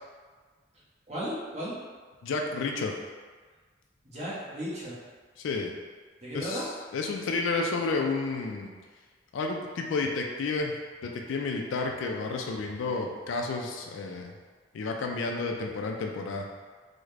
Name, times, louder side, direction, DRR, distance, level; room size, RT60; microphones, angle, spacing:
voice 1, 1.1-1.8 4.0-5.0 6.2-6.7, equal, 35° right, -8 dB, 0.9 m, -35 dB
voice 2, 2.2-3.0 5.4-5.7 6.3-6.6 6.9-8.7 9.3-10.8 11.0-14.3 14.7-16.5, left 3 dB, 85° left, 2 dB, 0.3 m, -31 dB
3.5 x 2.1 x 3.2 m, 1.5 s
head